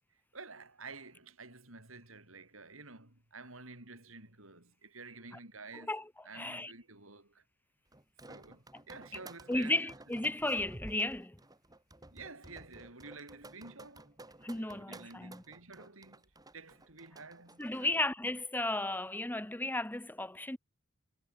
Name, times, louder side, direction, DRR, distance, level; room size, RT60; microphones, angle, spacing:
voice 1, 0.3-5.9 6.2-7.4 8.3-9.9 12.1-14.2 14.5-17.9, right 3 dB, 75° right, 6.9 m, -51 dB
voice 2, 6.3-6.7 9.5-11.4 14.4-15.4 17.6-20.6, left 2 dB, 10° left, 1.1 m, -34 dB
sound 1, 7.9-18.0, right 1 dB, 20° right, 4.3 m, -53 dB
head